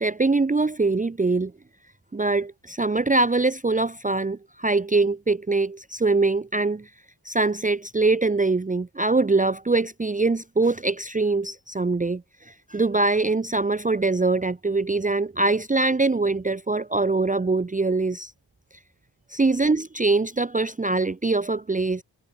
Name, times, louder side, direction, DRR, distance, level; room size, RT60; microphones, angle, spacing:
voice 1, 0.0-1.5 2.1-6.9 7.2-18.3 19.3-22.0, right 3 dB, 20° right, 0.8 m, -23 dB
wide cardioid pair, 100°, 43 cm